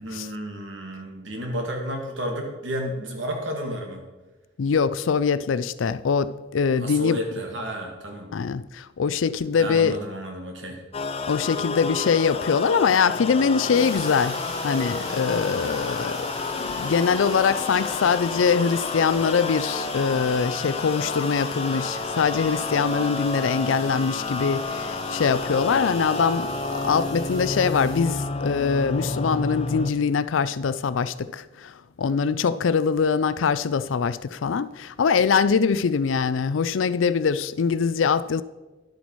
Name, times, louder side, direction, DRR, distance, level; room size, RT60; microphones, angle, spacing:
voice 1, 0.0-4.1 6.8-8.3 9.6-10.8, equal, 70° right, 2.1 m, -32 dB
voice 2, 4.6-7.2 8.3-10.0 11.3-16.3 16.6-31.7 32.0-38.4, left 6 dB, 85° left, 0.4 m, -23 dB
sound 1, 10.9-29.9, left 3 dB, 30° left, 0.5 m, -30 dB
sound 2, 13.7-28.0, equal, 20° right, 3.2 m, -41 dB
11.5 x 8.2 x 4.6 m
head